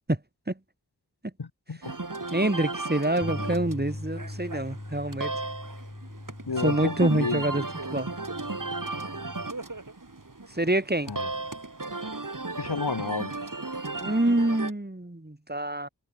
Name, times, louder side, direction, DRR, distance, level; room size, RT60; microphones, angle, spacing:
voice 1, 1.4-1.9 6.5-7.4 11.1-11.3 12.6-13.3, left 4 dB, 80° left, 2.7 m, -30 dB
sound 1, 1.8-14.7, right 3 dB, 55° right, 7.2 m, -35 dB
voice 2, 2.3-5.3 6.6-7.6 7.9-8.1 10.5-11.1 14.0-15.9, right 1 dB, 25° right, 4.8 m, -26 dB
sound 2, 3.2-9.5, left 1 dB, 25° left, 6.6 m, -40 dB
wide cardioid pair, 40°, 38 cm